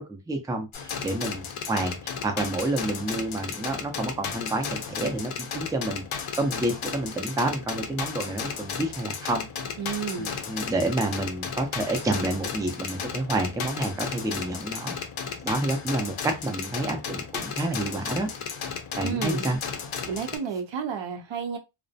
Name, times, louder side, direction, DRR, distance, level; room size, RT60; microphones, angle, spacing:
voice 1, 0.0-6.0 6.4-9.5 10.2-15.0 15.4-18.3 19.0-19.6, right 2 dB, 5° right, 0.4 m, -29 dB
sound 1, 0.7-20.4, left 6 dB, 75° left, 0.6 m, -34 dB
voice 2, 9.8-10.3 19.0-19.5 20.1-21.6, right 6 dB, 65° right, 0.6 m, -31 dB
2.3 x 2.0 x 2.6 m
wide cardioid pair, 100°, 49 cm